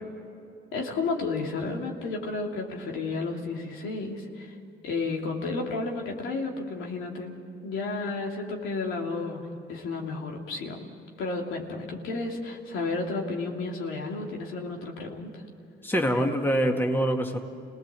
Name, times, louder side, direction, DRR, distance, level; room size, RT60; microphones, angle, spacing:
voice 1, 0.7-4.6 4.8-7.3 7.6-9.4 9.7-10.8 11.2-15.4, left 3 dB, 85° left, 0 dB, 2.9 m, -32 dB
voice 2, 15.8-17.4, equal, 10° left, 3 dB, 2.0 m, -24 dB
28.5 x 19.0 x 7.6 m, 2.7 s
cardioid pair, 90°, 20 cm